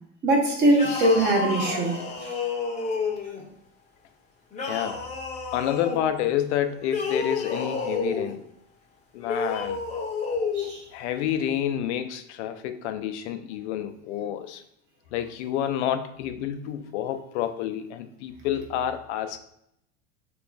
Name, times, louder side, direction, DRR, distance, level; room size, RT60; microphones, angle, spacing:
voice 1, 0.2-2.3 10.5-10.8, right 1 dB, 30° right, 1 dB, 0.9 m, -22 dB
sound 1, 0.7-3.4 4.5-6.0 6.8-8.3 9.2-10.7, left 4 dB, 20° left, 0.7 m, -30 dB
voice 2, 4.7-5.0 5.5-8.4 9.1-9.8 10.9-14.6 15.1-19.4, left 10 dB, 85° left, 8 dB, 0.5 m, -29 dB
2.9 x 2.4 x 3.8 m, 0.76 s
supercardioid pair, 130°, 33 cm